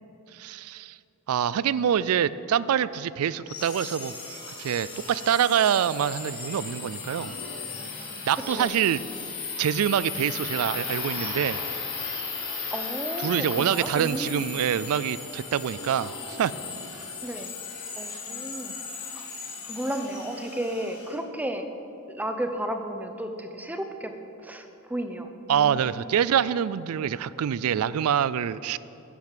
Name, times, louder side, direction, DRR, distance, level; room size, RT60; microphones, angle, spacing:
voice 1, 0.3-1.0 1.3-4.1 4.6-7.4 8.2-9.0 9.6-11.6 13.2-16.5 18.1-18.2 25.5-28.8, right 9 dB, 75° right, 18 dB, 0.3 m, -25 dB
sound 1, 3.5-21.1, left 4 dB, 80° left, 3.2 m, -36 dB
voice 2, 12.7-14.4 17.2-17.5 18.0-18.7 19.2-19.3 19.7-21.7 22.1-24.1 24.4-26.1, right 1 dB, 5° right, 6 dB, 0.7 m, -33 dB
11.0 x 7.7 x 7.4 m, 2.9 s
head